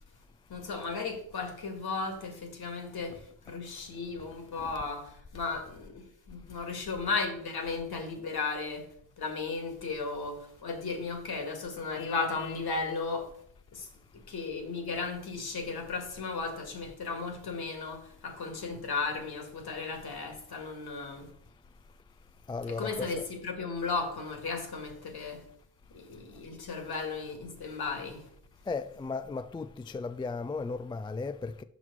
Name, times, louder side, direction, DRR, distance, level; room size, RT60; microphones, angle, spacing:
voice 1, 0.5-8.9 9.2-13.3 13.7-21.3 22.7-25.4 25.9-28.3, left 4 dB, 55° left, 2.0 m, -35 dB
Vehicle horn car horn honking, 11.9-12.7, left 15 dB, 70° left, 0.5 m, -43 dB
voice 2, 22.5-23.1 28.7-29.7 29.9-31.6, left 4 dB, 10° left, 0.3 m, -35 dB
6.1 x 5.7 x 4.7 m
hypercardioid pair, 45°, 44 cm